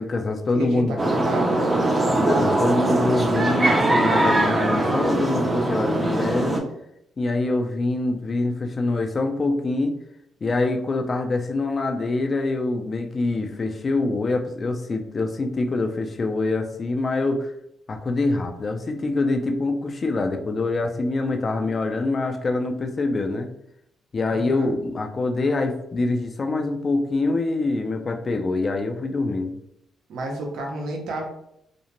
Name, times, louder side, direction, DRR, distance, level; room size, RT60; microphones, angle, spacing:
voice 1, 0.0-1.1 2.2-6.6 7.2-9.9 10.4-17.5 17.9-23.5 24.1-29.5, left 2 dB, 35° left, 5 dB, 0.4 m, -25 dB
voice 2, 0.5-1.7 24.3-24.7 30.1-31.3, right 2 dB, 75° right, 1 dB, 0.6 m, -30 dB
sound 1, 1.0-6.6, right 1 dB, 25° right, 0.5 m, -21 dB
2.5 x 2.1 x 2.9 m, 0.76 s
cardioid pair, 90°, 0 cm